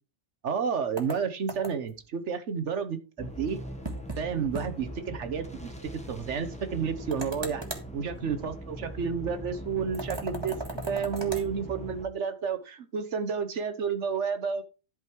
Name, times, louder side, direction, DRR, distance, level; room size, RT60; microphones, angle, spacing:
voice 1, 0.4-3.6 4.2-5.7 6.1-7.6 7.9-10.6 10.9-14.6, right 6 dB, 70° right, 10 dB, 1.4 m, -31 dB
sound 1, 1.0-2.0 3.8-4.2 4.5-4.7 5.0-5.1 7.1-7.9 9.9-11.5, right 2 dB, 20° right, 1.8 m, -37 dB
sound 2, 3.2-12.0, right 1 dB, 5° left, 1.2 m, -41 dB
11.0 x 5.2 x 4.6 m, 0.32 s
omnidirectional pair, 1.2 m